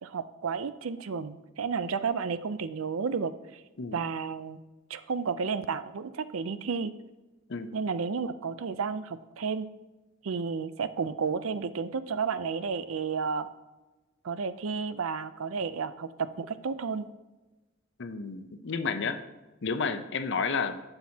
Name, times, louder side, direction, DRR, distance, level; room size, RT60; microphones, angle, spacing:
voice 1, 0.0-3.6 3.9-4.6 4.9-6.9 7.7-9.7 10.2-13.5 14.2-17.1, right 5 dB, 80° right, 13 dB, 0.5 m, -32 dB
voice 2, 18.0-19.2 19.6-20.8, left 5 dB, 60° left, 10 dB, 0.7 m, -31 dB
11.5 x 7.9 x 2.8 m, 1.1 s
head